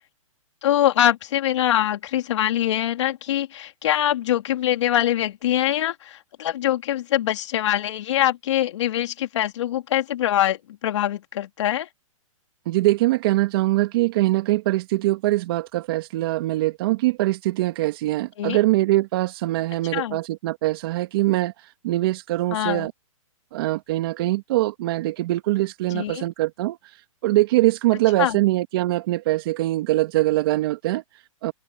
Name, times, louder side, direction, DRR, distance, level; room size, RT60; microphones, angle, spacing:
voice 1, 0.6-11.9 18.4-18.6 19.9-20.2 22.5-22.9 25.9-26.2 28.2-28.4, left 12 dB, 55° left, 3.5 m, -23 dB
voice 2, 12.7-22.9 23.5-31.5, right 17 dB, 45° right, 2.0 m, -23 dB
open air
hypercardioid pair, 150°, 18 cm